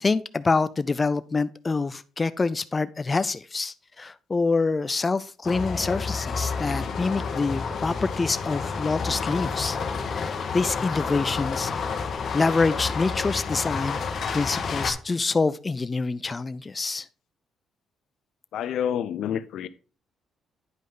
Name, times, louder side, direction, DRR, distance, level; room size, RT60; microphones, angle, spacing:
voice 1, 0.0-9.8 10.1-11.9 12.3-14.0 14.3-17.1, left 4 dB, 25° left, 0.4 m, -26 dB
sound 1, 5.4-14.9, left 5 dB, 50° left, 1.4 m, -30 dB
voice 2, 18.5-19.7, left 9 dB, 75° left, 0.6 m, -28 dB
9.6 x 5.1 x 3.8 m
cardioid pair, 90°, 0 cm